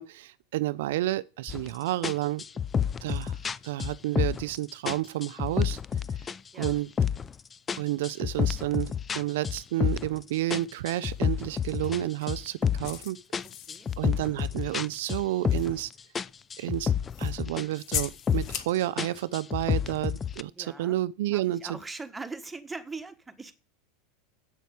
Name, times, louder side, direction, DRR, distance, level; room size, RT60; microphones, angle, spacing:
voice 1, 0.0-2.4 3.0-3.4 3.6-5.8 6.6-6.9 7.8-13.2 14.0-15.9 16.6-16.9 17.2-21.6, right 15 dB, 75° right, 0.5 m, -30 dB
sound 1, 1.5-1.7 2.0-4.6 4.9-6.4 6.6-7.3 7.7-10.2 10.5-13.0 13.3-15.9 16.1-17.7 17.9-18.6 19.0-20.4, left 7 dB, 20° left, 0.5 m, -29 dB
sound 2, 11.0-11.2 11.8-12.4 12.8-14.0 14.8-14.9 15.5-15.7 17.1-17.3 17.8-18.7, left 10 dB, 50° left, 1.4 m, -37 dB
voice 2, 13.4-13.9 20.4-21.0 21.3-23.6, right 3 dB, 10° right, 1.5 m, -41 dB
8.3 x 7.7 x 7.0 m
supercardioid pair, 115°, 0 cm